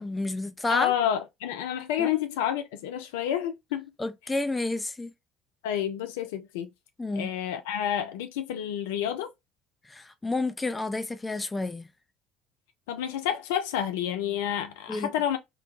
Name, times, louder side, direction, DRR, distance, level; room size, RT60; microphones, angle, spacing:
voice 1, 0.0-0.9 2.0-2.1 4.0-5.1 7.0-7.3 9.9-11.8 14.9-15.1, left 2 dB, 15° left, 0.6 m, -30 dB
voice 2, 0.7-3.9 5.6-6.7 7.2-9.3 12.9-15.4, left 10 dB, 70° left, 0.3 m, -29 dB
3.1 x 2.1 x 2.3 m
figure-of-eight pair, 60°, 0 cm